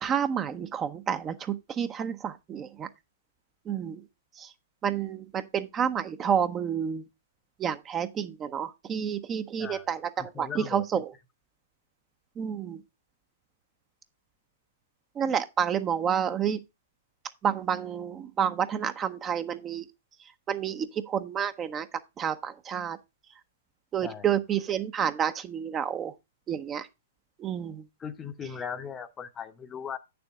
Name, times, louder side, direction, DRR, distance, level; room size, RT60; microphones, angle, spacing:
voice 1, 0.0-2.9 3.7-4.0 4.4-4.5 4.8-7.0 7.6-11.1 12.4-12.8 15.2-16.6 17.4-19.8 20.5-21.9 22.2-23.0 23.9-26.1 26.5-26.9 27.4-27.8, right 8 dB, 25° right, 0.7 m, -29 dB
voice 2, 10.3-10.8 24.0-24.3 28.0-30.0, left 7 dB, 20° left, 0.8 m, -38 dB
8.8 x 7.0 x 3.5 m
hypercardioid pair, 120°, 0 cm